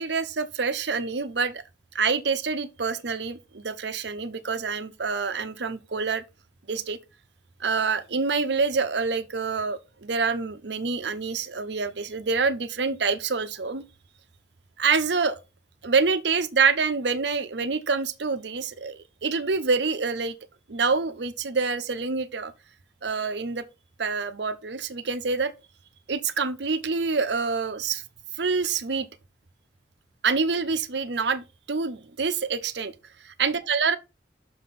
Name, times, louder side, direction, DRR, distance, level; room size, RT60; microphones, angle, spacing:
voice 1, 0.0-1.6 1.9-6.2 6.7-7.0 7.6-13.8 14.8-15.4 15.8-20.3 20.7-22.5 23.0-23.6 24.0-25.5 26.1-28.0 28.3-29.1 30.2-32.9 33.2-34.0, right 4 dB, 75° right, 0.8 m, -26 dB
6.4 x 5.6 x 4.2 m
head